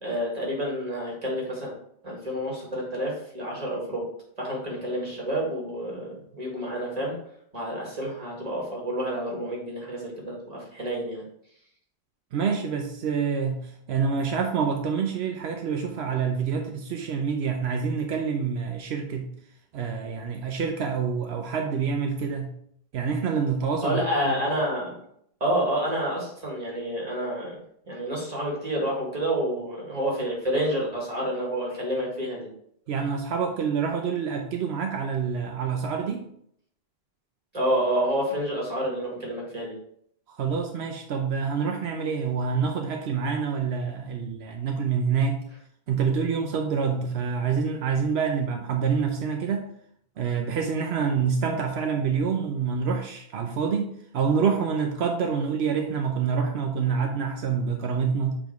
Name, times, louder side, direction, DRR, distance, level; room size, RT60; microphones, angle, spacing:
voice 1, 0.0-1.7 2.0-4.0 4.4-7.2 7.5-11.2 23.8-25.0 25.4-27.6 27.8-32.5 37.5-39.8, equal, 40° right, -3 dB, 2.1 m, -29 dB
voice 2, 12.3-19.3 19.7-22.5 22.9-24.3 32.9-36.3 40.3-45.4 45.9-49.7 50.2-58.4, right 6 dB, 80° right, 3 dB, 0.9 m, -27 dB
7.1 x 3.7 x 4.6 m, 0.70 s
omnidirectional pair, 1.1 m